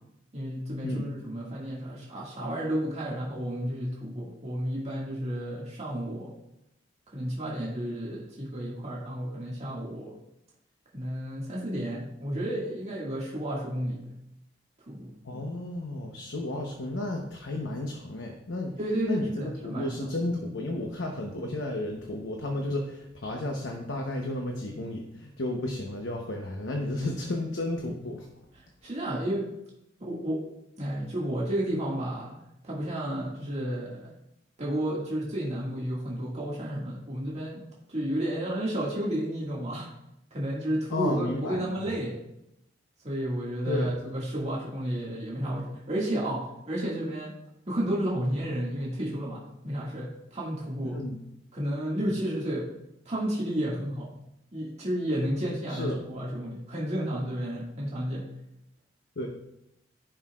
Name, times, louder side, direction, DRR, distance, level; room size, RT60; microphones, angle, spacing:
voice 1, 0.3-6.3 7.1-10.1 10.9-14.1 14.9-15.1 18.8-19.9 28.5-29.5 30.0-30.4 30.8-32.4 32.6-34.1 34.6-37.6 37.9-39.9 40.3-42.2 43.0-47.3 47.7-51.0 51.5-52.7 53.1-54.1 54.5-58.2, right 1 dB, 40° right, -5 dB, 2.0 m, -32 dB
voice 2, 15.2-18.7 19.1-28.3 40.9-41.9 43.7-43.9 50.8-51.2 55.7-56.0 59.2-59.3, left 1 dB, 75° left, 2 dB, 0.9 m, -33 dB
15.0 x 5.6 x 2.4 m, 0.84 s
head